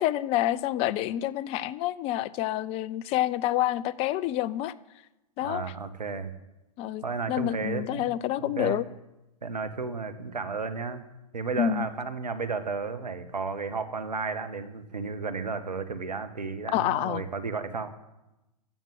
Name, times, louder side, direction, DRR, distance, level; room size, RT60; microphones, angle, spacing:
voice 1, 0.0-4.7 5.4-5.7 6.8-8.8 11.6-11.9 16.7-17.2, left 13 dB, 30° left, 20 dB, 0.5 m, -28 dB
voice 2, 5.4-6.3 7.0-8.1 8.6-8.8 9.4-11.0 11.3-17.9, right 4 dB, 85° right, 10 dB, 1.4 m, -33 dB
15.0 x 7.4 x 7.9 m, 0.97 s
figure-of-eight pair, 105°, 21 cm